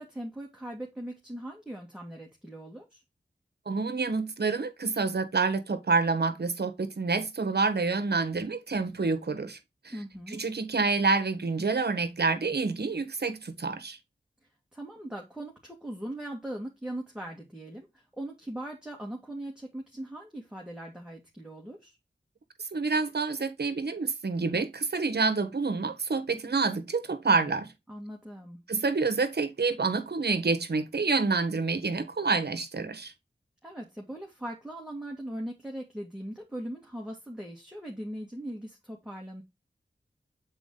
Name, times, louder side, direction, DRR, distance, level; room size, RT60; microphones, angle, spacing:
voice 1, 0.0-3.0 9.9-10.4 14.7-22.0 27.9-28.6 33.6-39.4, right 1 dB, 5° right, 1.9 m, -40 dB
voice 2, 3.7-9.6 9.8-9.9 10.3-14.0 22.7-27.7 28.7-33.1, right 4 dB, 65° right, 1.2 m, -28 dB
7.2 x 4.1 x 3.7 m
cardioid pair, 45°, 18 cm